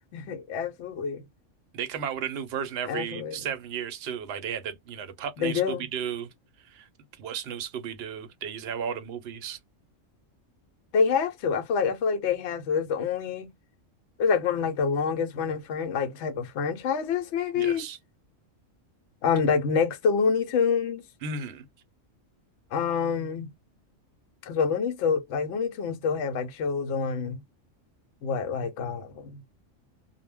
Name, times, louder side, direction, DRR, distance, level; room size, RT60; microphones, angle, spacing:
voice 1, 0.1-1.2 2.9-3.4 5.4-5.8 10.9-13.5 14.2-17.8 19.2-21.0 22.7-23.5 24.4-27.4 28.2-29.4, left 6 dB, 65° left, 0.8 m, -27 dB
voice 2, 1.7-6.3 6.6-6.9 7.2-9.6 17.5-18.0 21.2-21.6, right 7 dB, 60° right, 0.8 m, -34 dB
2.1 x 2.1 x 3.4 m
omnidirectional pair, 1.3 m